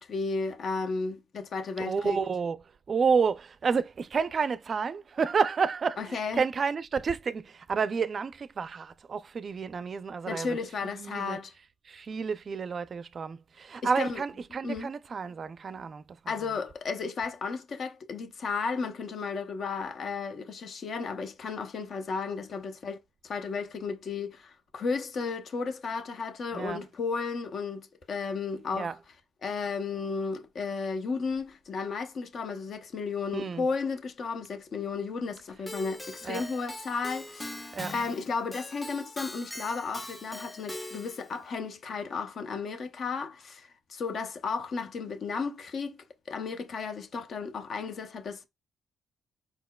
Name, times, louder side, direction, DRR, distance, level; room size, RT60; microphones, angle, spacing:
voice 1, 0.0-2.2 6.0-6.4 10.3-11.5 13.8-14.2 14.6-14.9 16.3-23.0 23.2-28.9 29.4-45.9 46.3-48.4, left 4 dB, 55° left, 0.7 m, -34 dB
voice 2, 1.8-16.6 26.5-26.8 28.7-29.0 33.3-33.7 36.2-36.5 37.7-38.0, right 5 dB, 45° right, 0.4 m, -30 dB
Keyboard (musical), 35.7-41.3, left 1 dB, 15° left, 0.6 m, -42 dB
4.5 x 4.2 x 2.2 m
cardioid pair, 90°, 0 cm